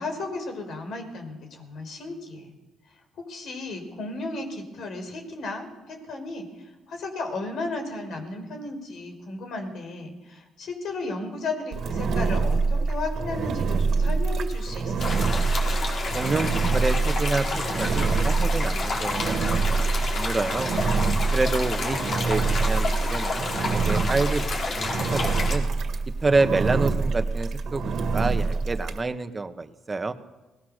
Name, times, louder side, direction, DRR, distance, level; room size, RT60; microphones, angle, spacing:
voice 1, 0.0-2.5 3.2-15.2, left 2 dB, 70° left, 5 dB, 5.1 m, -34 dB
Engine, 11.7-29.0, right 4 dB, 65° right, 2.1 m, -26 dB
sound 1, 15.0-25.6, left 3 dB, 55° left, 4.7 m, -30 dB
voice 2, 16.1-20.7 21.3-24.5 24.7-25.7 26.2-30.1, right 3 dB, 25° right, 8 dB, 1.4 m, -28 dB
21.5 x 19.0 x 6.7 m, 1.1 s
cardioid pair, 90°, 0 cm